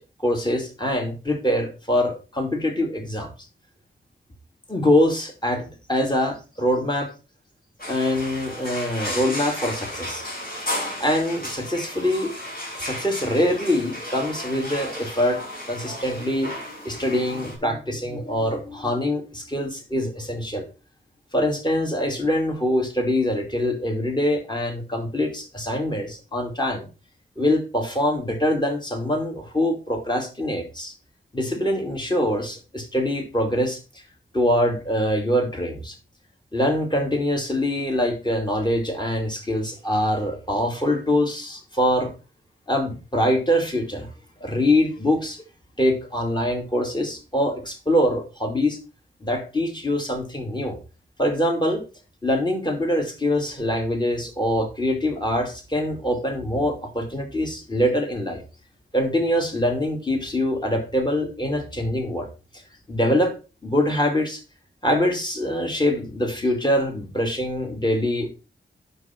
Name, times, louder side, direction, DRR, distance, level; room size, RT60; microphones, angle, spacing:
voice 1, 0.2-3.3 4.7-7.1 7.9-10.3 11.0-12.3 12.7-15.4 15.7-16.5 16.8-20.7 21.3-26.9 27.4-30.9 31.3-33.8 34.3-36.0 36.5-42.1 42.7-44.1 44.4-45.4 45.8-48.8 49.2-50.8 51.2-51.8 52.2-58.4 58.9-62.3 62.9-63.3 63.6-64.4 64.8-68.3, left 1 dB, 20° left, 2 dB, 2.7 m, -24 dB
sound 1, 7.8-17.6, left 1 dB, 45° left, 6.5 m, -34 dB
9.6 x 7.1 x 4.5 m, 0.32 s
wide cardioid pair, 85°, 20 cm